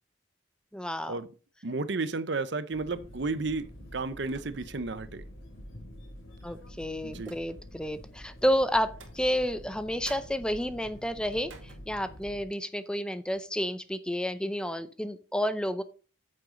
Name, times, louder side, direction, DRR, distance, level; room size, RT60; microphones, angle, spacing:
voice 1, 0.7-1.2 6.4-15.8, equal, 5° left, 0.5 m, -30 dB
voice 2, 1.6-5.3 7.0-7.3, right 3 dB, 60° right, 0.8 m, -33 dB
sound 1, 2.7-12.4, equal, 85° left, 3.3 m, -47 dB
sound 2, 3.0-3.2 4.2-4.9 5.3-5.4 6.4-7.8 8.8-9.8 10.0-12.4 12.8-13.0 13.3-13.6, right 4 dB, 75° right, 2.2 m, -54 dB
9.1 x 7.6 x 3.8 m
head